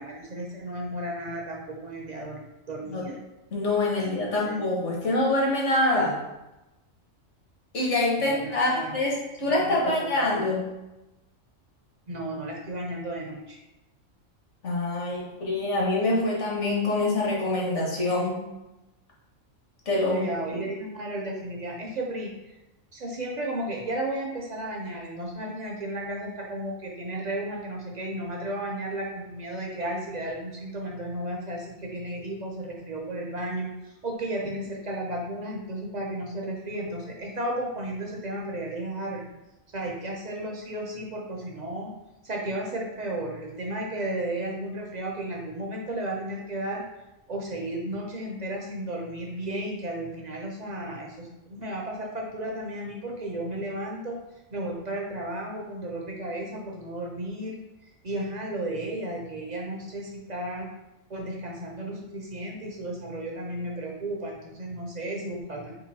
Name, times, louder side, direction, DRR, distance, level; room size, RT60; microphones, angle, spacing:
voice 1, 0.0-3.2 4.0-4.6 8.2-9.0 9.4-10.5 12.1-13.6 20.1-22.6 22.9-39.3 39.7-41.9 42.2-46.8 47.3-54.2 54.5-60.7 61.1-65.7, right 1 dB, 45° right, -1 dB, 0.5 m, -34 dB
voice 2, 3.5-6.2 7.7-10.6 14.6-18.4 19.9-20.2, left 2 dB, 60° left, -3 dB, 1.4 m, -25 dB
3.7 x 3.0 x 4.0 m, 0.98 s
omnidirectional pair, 1.4 m